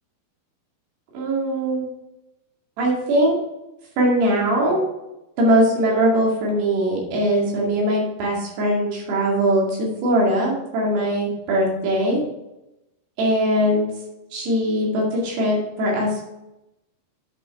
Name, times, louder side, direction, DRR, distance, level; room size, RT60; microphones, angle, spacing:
voice 1, 1.1-1.9 2.8-3.4 4.0-4.9 5.4-12.2 13.2-13.9 14.3-16.2, right 1 dB, 85° right, -3 dB, 4.3 m, -21 dB
8.8 x 5.7 x 4.6 m, 0.93 s
omnidirectional pair, 4.7 m